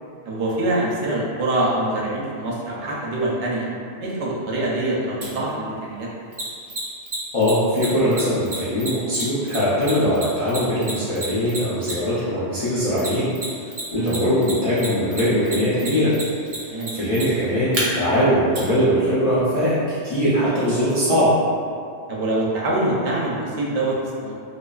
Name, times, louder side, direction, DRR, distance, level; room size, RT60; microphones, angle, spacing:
voice 1, 0.2-3.7 4.0-6.1 13.9-14.2 16.7-16.9 22.1-24.3, right 1 dB, 75° right, -5 dB, 0.8 m, -24 dB
Mechanisms, 5.2-5.3 6.3-12.2 13.0-13.8 14.1-17.8 18.5-18.6, right 2 dB, 50° right, 0.4 m, -30 dB
voice 2, 7.3-13.3 13.6-16.1 16.9-21.3, equal, 55° left, -12 dB, 0.4 m, -21 dB
2.4 x 2.2 x 2.3 m, 2.3 s
omnidirectional pair, 1.2 m